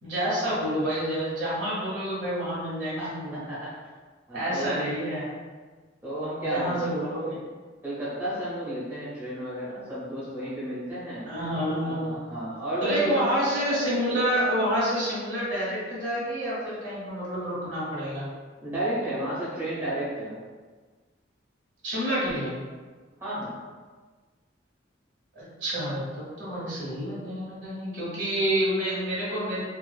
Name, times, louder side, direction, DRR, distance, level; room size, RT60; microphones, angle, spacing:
voice 1, 0.0-3.3 4.3-5.3 6.4-7.4 11.3-12.2 12.8-18.3 21.8-22.5 25.3-29.6, equal, 85° right, -7 dB, 1.1 m, -28 dB
voice 2, 3.0-3.7 4.3-4.8 6.0-6.9 7.8-11.3 11.8-13.3 18.6-20.4 23.2-23.6, right 1 dB, 10° right, -11 dB, 0.8 m, -32 dB
2.5 x 2.4 x 2.2 m, 1.4 s
head